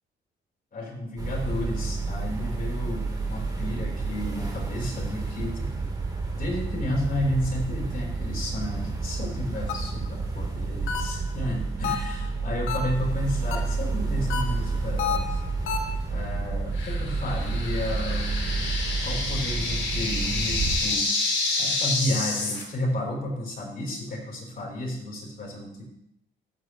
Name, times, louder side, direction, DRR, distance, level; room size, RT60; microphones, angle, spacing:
voice 1, 0.7-5.9 6.3-15.4 16.1-18.7 19.0-21.1 21.6-25.8, left 1 dB, 45° left, -1 dB, 4.0 m, -32 dB
sound 1, 1.2-20.8, right 3 dB, 20° right, 2.4 m, -30 dB
sound 2, 9.7-10.1 10.9-11.4 11.8-12.3 12.7-13.1 13.5-13.9 14.3-16.0, left 8 dB, 80° left, 1.4 m, -31 dB
sound 3, 16.8-22.6, left 3 dB, 65° left, 3.2 m, -29 dB
13.5 x 9.0 x 3.1 m, 0.76 s
cardioid pair, 90°, 20 cm